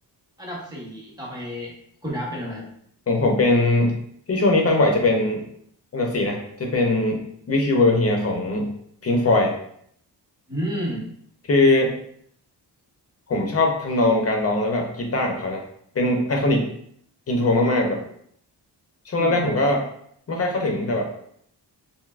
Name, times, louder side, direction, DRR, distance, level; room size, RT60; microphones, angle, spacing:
voice 1, 0.4-1.7 2.0-2.7 10.5-11.1 19.1-19.5, equal, 10° right, -4 dB, 0.8 m, -31 dB
voice 2, 3.1-4.0 4.3-5.5 5.9-8.7 9.0-9.5 11.5-11.9 13.3-15.6 15.9-16.7 17.3-18.0 19.1-19.8 20.3-21.1, left 2 dB, 35° left, 1 dB, 0.5 m, -21 dB
3.3 x 2.5 x 2.4 m, 0.67 s
wide cardioid pair, 155°, 41 cm